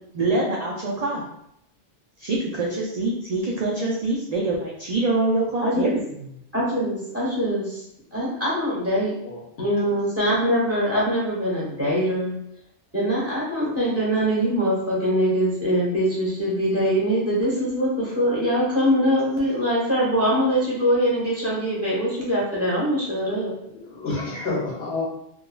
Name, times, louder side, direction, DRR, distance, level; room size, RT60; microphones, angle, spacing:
voice 1, 0.1-1.2 2.2-6.2, right 2 dB, 50° right, -5 dB, 0.5 m, -25 dB
voice 2, 5.6-5.9 6.5-7.8 8.1-9.1 9.6-12.3 12.9-23.5, equal, 15° right, -6 dB, 1.0 m, -23 dB
voice 3, 9.2-9.7 23.7-25.0, left 3 dB, 65° left, -4 dB, 1.0 m, -29 dB
3.7 x 2.2 x 2.4 m, 0.76 s
omnidirectional pair, 1.2 m